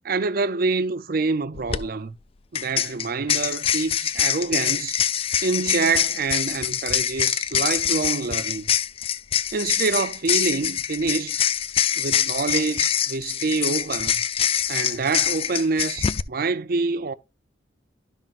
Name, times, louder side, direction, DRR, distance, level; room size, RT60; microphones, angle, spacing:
voice 1, 0.0-2.2 2.5-5.0 5.4-8.7 9.5-11.4 12.0-14.1 14.7-17.1, right 4 dB, 50° right, 0.5 m, -26 dB
sound 1, 1.6-1.8 2.6-16.2, left 9 dB, 30° left, 0.3 m, -24 dB
12.0 x 5.8 x 2.5 m
head